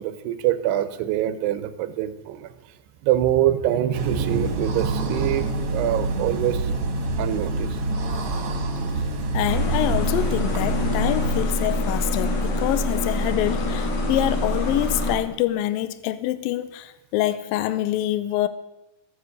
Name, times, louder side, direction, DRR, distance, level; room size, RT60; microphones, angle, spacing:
voice 1, 0.0-2.5 3.0-6.8 7.2-7.8, right 12 dB, 80° right, 12 dB, 2.9 m, -24 dB
sound 1, 3.9-11.4, right 2 dB, 50° right, 1.9 m, -27 dB
voice 2, 9.3-18.5, left 13 dB, 80° left, 12 dB, 2.1 m, -25 dB
sound 2, 9.5-15.2, left 1 dB, 60° left, 3.7 m, -25 dB
14.0 x 9.7 x 8.1 m, 0.97 s
omnidirectional pair, 4.7 m